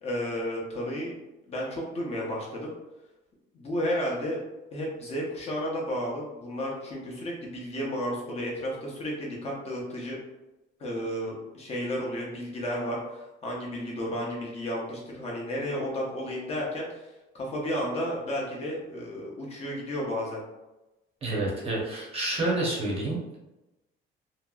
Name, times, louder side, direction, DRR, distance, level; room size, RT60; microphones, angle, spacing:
voice 1, 0.0-1.1 1.5-2.7 3.5-4.4 4.7-10.2 10.8-16.9 17.3-20.4, equal, 30° left, -3 dB, 0.8 m, -32 dB
voice 2, 21.2-23.4, right 2 dB, 30° right, -4 dB, 0.7 m, -29 dB
2.9 x 2.8 x 2.3 m, 1.0 s
cardioid pair, 175°, 21 cm